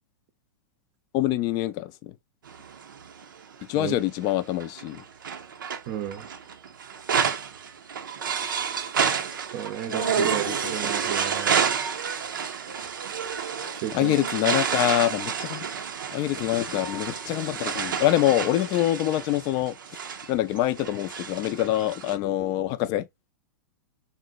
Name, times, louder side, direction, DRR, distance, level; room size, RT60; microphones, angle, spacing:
voice 1, 1.1-2.2 3.7-5.0 8.4-8.5 9.9-10.9 13.9-15.7 16.1-19.8 20.3-23.1, left 14 dB, 40° left, 0.4 m, -25 dB
sound 1, 2.5-3.6 4.2-22.1, right 7 dB, 90° right, 0.5 m, -30 dB
voice 2, 5.9-6.3 9.5-11.8 13.7-14.1, right 10 dB, 45° right, 0.6 m, -33 dB
3.7 x 2.1 x 2.3 m
hypercardioid pair, 120°, 11 cm